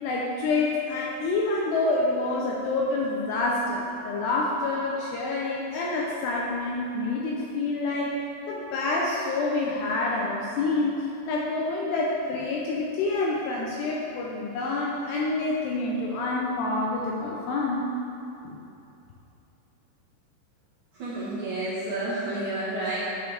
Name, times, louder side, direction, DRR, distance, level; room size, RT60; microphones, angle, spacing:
voice 1, 0.0-8.1 8.5-17.9 18.4-18.6, left 2 dB, 80° left, -3 dB, 2.4 m, -27 dB
voice 2, 20.9-23.0, right 2 dB, 60° right, -11 dB, 2.1 m, -30 dB
12.0 x 5.0 x 3.4 m, 2.8 s
omnidirectional pair, 5.5 m